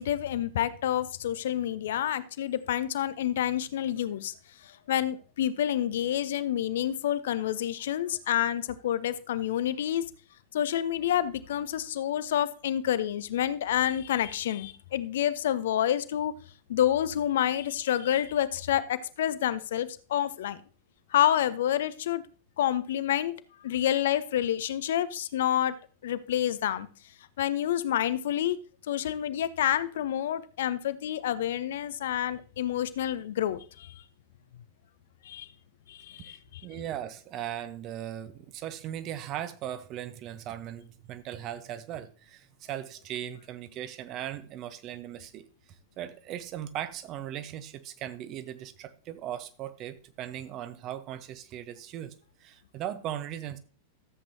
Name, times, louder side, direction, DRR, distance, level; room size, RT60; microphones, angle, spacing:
voice 1, 0.0-4.3 4.6-10.0 10.5-16.3 16.7-20.6 21.1-22.2 22.6-23.3 23.6-25.7 26.0-26.9 27.4-28.6 28.9-34.0 35.2-35.5 35.9-36.7, left 11 dB, 60° left, 0.6 m, -28 dB
voice 2, 36.3-45.5 46.0-52.1 52.4-53.6, right 11 dB, 35° right, 0.9 m, -38 dB
13.5 x 7.8 x 2.8 m
figure-of-eight pair, 90°, 0 cm